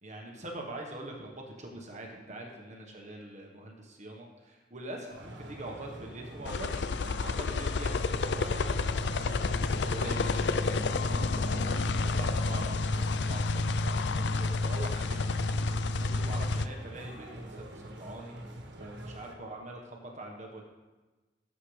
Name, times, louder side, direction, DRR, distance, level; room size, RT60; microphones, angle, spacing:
voice 1, 0.0-15.3 15.6-18.3 18.8-20.6, right 1 dB, 40° right, 1 dB, 1.3 m, -44 dB
sound 1, 5.1-19.3, right 1 dB, 80° right, 1.5 m, -46 dB
sound 2, 6.5-16.7, left 3 dB, 70° left, 0.5 m, -29 dB
19.0 x 7.6 x 3.3 m, 1.2 s
head